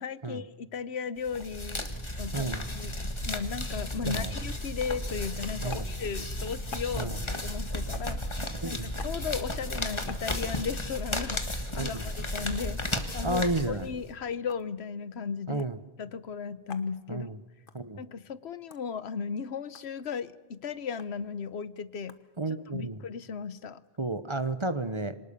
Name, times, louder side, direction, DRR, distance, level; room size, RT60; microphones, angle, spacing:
voice 1, 0.0-8.2 8.6-12.8 13.1-13.4 13.7-15.6 16.0-17.3 18.0-22.2 22.7-23.8, left 6 dB, 85° left, 16 dB, 1.2 m, -36 dB
sound 1, 1.2-14.1, left 1 dB, 30° left, 1.7 m, -34 dB
voice 2, 2.3-2.6 4.1-4.3 5.6-5.9 7.0-7.2 8.6-8.9 11.8-12.0 13.2-13.9 15.5-15.8 17.1-17.4 17.7-18.0 22.4-23.0 24.0-25.2, right 2 dB, 30° right, 13 dB, 0.9 m, -32 dB
sound 2, 5.7-5.9 6.7-7.0 7.9-8.2 9.0-9.2 10.1-10.3 11.3-11.5 12.4-12.6 13.4-13.6 14.4-14.7 15.6-15.8 16.7-16.9 17.7-17.8 18.7-18.8 19.7-19.9 21.0-21.1 22.1-22.2 23.8-24.6, left 5 dB, 55° left, 1.5 m, -46 dB
26.0 x 19.0 x 6.8 m, 1.2 s
omnidirectional pair, 1.0 m